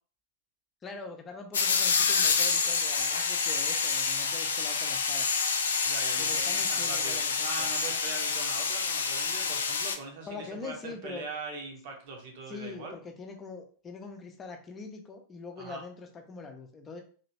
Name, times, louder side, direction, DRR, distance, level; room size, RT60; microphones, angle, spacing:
voice 1, 0.8-5.3 6.2-7.7 10.3-11.3 12.5-17.0, left 4 dB, 20° left, 4 dB, 0.7 m, -43 dB
sound 1, 1.5-10.0, left 5 dB, 65° left, 0.4 m, -28 dB
voice 2, 5.8-13.0 15.6-15.8, right 3 dB, 50° right, 2 dB, 1.0 m, -41 dB
2.9 x 2.9 x 2.9 m, 0.42 s
figure-of-eight pair, 90°, 0 cm